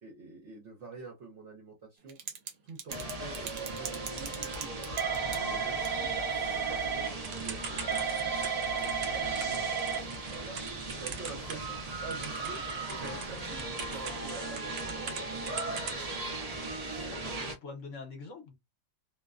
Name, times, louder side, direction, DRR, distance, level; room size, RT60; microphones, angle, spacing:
voice 1, 0.0-2.2 2.6-4.8 5.3-8.1 8.5-11.6 12.0-12.6 12.9-15.9, right 4 dB, 60° right, 1.1 m, -47 dB
Typing / Telephone, 2.1-2.5 2.8-11.8 12.1-15.2 15.5-16.0, right 6 dB, 80° right, 1.1 m, -34 dB
sound 1, 2.9-17.5, right 2 dB, 40° right, 0.6 m, -38 dB
voice 2, 6.2-6.5 11.7-11.8 13.7-13.9 17.1-18.6, left 4 dB, 65° left, 1.1 m, -46 dB
2.7 x 2.2 x 2.3 m
omnidirectional pair, 1.4 m